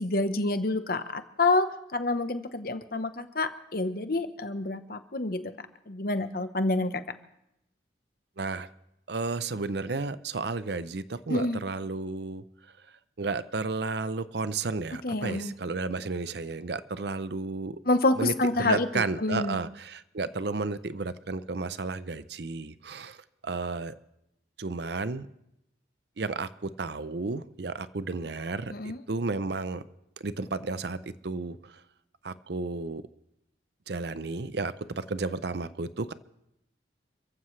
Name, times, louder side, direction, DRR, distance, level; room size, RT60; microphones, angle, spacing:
voice 1, 0.0-5.5 5.9-6.9 11.3-11.6 15.0-15.5 17.9-19.6 28.7-29.0, left 2 dB, 50° left, 10 dB, 1.1 m, -28 dB
voice 2, 8.4-8.7 9.1-12.4 13.2-17.8 18.2-18.3 18.6-23.9 24.6-25.3 26.2-26.5 26.8-29.8 30.2-31.0 31.2-31.7 32.2-33.0 33.9-36.1, right 3 dB, 60° right, 14 dB, 0.6 m, -32 dB
29.0 x 15.0 x 3.3 m, 0.82 s
head